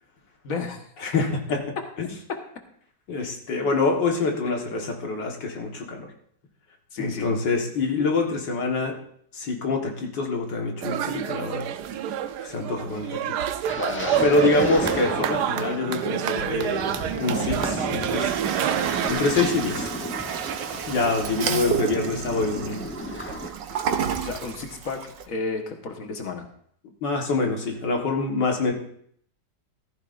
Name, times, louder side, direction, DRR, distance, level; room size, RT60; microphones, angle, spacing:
voice 1, 0.4-0.8 6.9-7.3 13.7-14.5 23.9-25.0 25.3-26.5, left 4 dB, 50° left, 4 dB, 1.8 m, -33 dB
voice 2, 1.0-1.6 2.0-2.1 3.1-6.1 7.0-9.0 9.3-11.7 12.4-13.2 14.2-18.4 19.1-19.9 20.9-22.8 27.0-28.7, left 3 dB, 80° left, 1 dB, 2.3 m, -25 dB
sound 1, 10.8-19.1, right 9 dB, 75° right, 1.2 m, -28 dB
sound 2, 13.7-23.5, left 1 dB, 10° left, 0.7 m, -35 dB
Toilet flush, 17.1-25.2, right 8 dB, 90° right, 1.6 m, -30 dB
14.5 x 14.5 x 2.6 m, 0.65 s
omnidirectional pair, 1.9 m